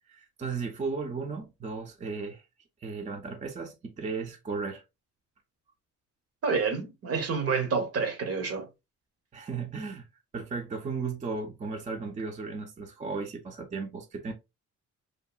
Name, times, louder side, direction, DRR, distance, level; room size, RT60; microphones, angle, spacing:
voice 1, 0.1-2.4 2.8-4.8 9.3-10.1 10.3-14.3, right 4 dB, 25° right, 0.5 m, -35 dB
voice 2, 6.4-8.7, right 5 dB, 55° right, 0.8 m, -28 dB
2.8 x 2.5 x 2.3 m
cardioid pair, 90°, 30 cm